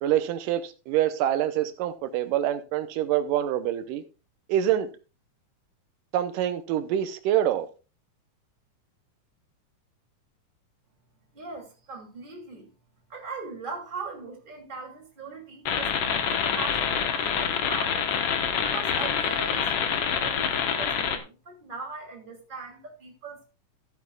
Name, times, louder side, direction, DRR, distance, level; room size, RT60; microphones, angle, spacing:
voice 1, 0.0-4.0 4.5-4.9 6.1-7.7, right 11 dB, 85° right, 2.4 m, -26 dB
voice 2, 11.3-12.7 13.1-18.1 18.6-23.5, right 4 dB, 15° right, 2.5 m, -40 dB
sound 1, 15.7-21.2, left 7 dB, 60° left, 1.8 m, -26 dB
14.5 x 9.5 x 2.3 m
omnidirectional pair, 3.8 m